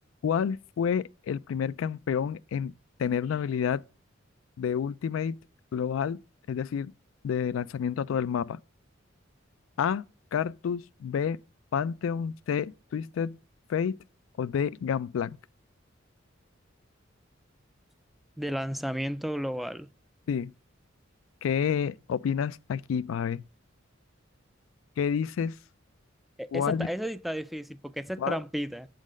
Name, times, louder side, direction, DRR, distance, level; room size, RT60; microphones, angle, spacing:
voice 1, 0.2-2.7 3.0-3.8 4.6-5.4 5.7-6.2 6.5-6.9 7.2-8.6 9.8-10.0 10.3-11.4 11.7-13.4 13.7-14.0 14.4-15.4 20.3-20.5 21.4-23.4 25.0-25.5 26.5-26.9 28.2-28.4, left 7 dB, 80° left, 0.3 m, -29 dB
voice 2, 18.4-19.9 26.4-28.9, equal, ahead, 0.3 m, -33 dB
7.2 x 3.9 x 6.3 m
head